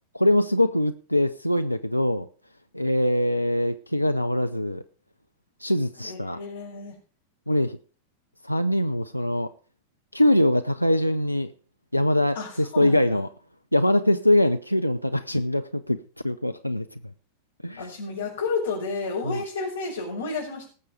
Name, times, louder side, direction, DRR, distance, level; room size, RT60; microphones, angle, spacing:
voice 1, 0.1-2.3 2.7-4.8 5.6-6.4 7.5-7.8 8.4-9.5 10.1-11.5 11.9-13.3 13.7-16.9 17.6-17.8 19.2-19.4, left 1 dB, 90° left, 0.5 m, -23 dB
voice 2, 6.1-7.0 12.3-13.1 17.8-20.7, left 4 dB, 70° left, 5.2 m, -31 dB
19.0 x 6.7 x 5.0 m
figure-of-eight pair, 90°, 0 cm